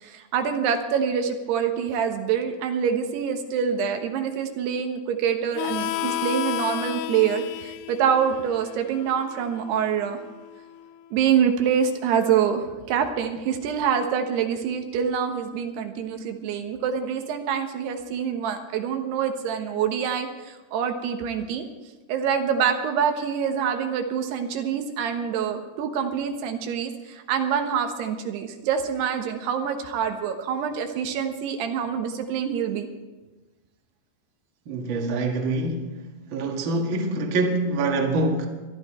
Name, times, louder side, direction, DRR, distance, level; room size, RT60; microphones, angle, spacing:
voice 1, 0.0-10.2 11.1-21.6 22.1-32.9, right 7 dB, 85° right, 5 dB, 3.3 m, -26 dB
Harmonica, 5.5-10.8, left 14 dB, 85° left, 2.0 m, -33 dB
voice 2, 34.6-38.5, right 2 dB, 45° right, 2 dB, 1.7 m, -25 dB
22.0 x 12.0 x 4.4 m, 1.2 s
omnidirectional pair, 4.6 m